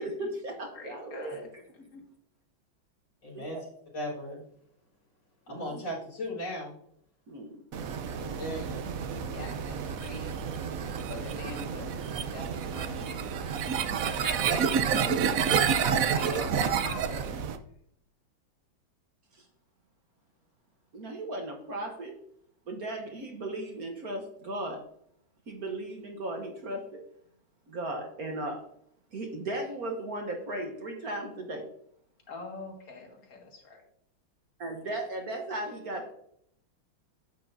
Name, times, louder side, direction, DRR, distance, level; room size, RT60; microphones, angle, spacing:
voice 1, 0.0-1.5 3.3-3.6 5.5-5.8 7.3-7.6 8.0-8.4 13.6-13.7 19.3-19.4 20.9-22.2 22.7-24.8 25.5-27.0 27.7-28.6 29.1-31.7 34.6-36.1, right 1 dB, 50° right, 2 dB, 1.4 m, -36 dB
voice 2, 0.7-1.5 1.7-2.0 9.3-13.2 14.0-15.0 15.9-17.3 32.3-33.8, left 3 dB, 45° left, 1 dB, 2.2 m, -44 dB
voice 3, 3.2-3.6 3.9-4.4 5.5-6.7 8.2-8.9, equal, 70° left, -4 dB, 4.5 m, -37 dB
sound 1, 7.7-17.6, right 7 dB, 65° right, 0.8 m, -29 dB
11.0 x 8.3 x 2.7 m, 0.70 s
omnidirectional pair, 2.3 m